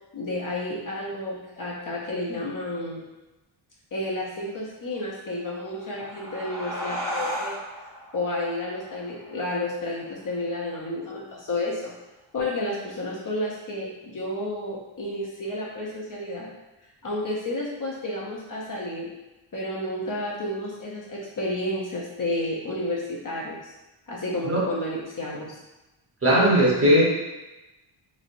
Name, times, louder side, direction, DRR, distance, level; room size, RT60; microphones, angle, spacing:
voice 1, 0.1-3.0 3.9-7.6 8.1-11.9 12.3-16.5 17.0-19.1 19.5-23.7 24.1-25.6, left 1 dB, 40° left, -5 dB, 0.6 m, -31 dB
sound 1, 5.6-10.7, equal, 5° right, 0.7 m, -36 dB
voice 2, 26.2-27.0, equal, 25° right, -6 dB, 0.9 m, -18 dB
3.6 x 3.1 x 2.5 m, 1.1 s
wide cardioid pair, 170°, 49 cm